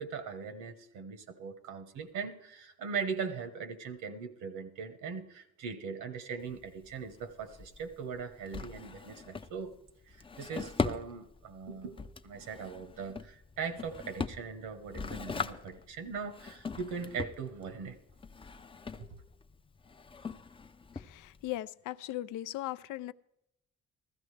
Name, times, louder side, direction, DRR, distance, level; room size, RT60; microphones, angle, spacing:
voice 1, 0.0-9.7 10.1-12.0 12.2-18.0 19.0-19.1, right 5 dB, 90° right, 1.2 m, -40 dB
Drawer open or close, 6.4-21.6, left 4 dB, 20° left, 0.4 m, -41 dB
voice 2, 21.1-23.1, left 14 dB, 85° left, 0.4 m, -38 dB
15.0 x 13.0 x 3.3 m
cardioid pair, 90°, 30 cm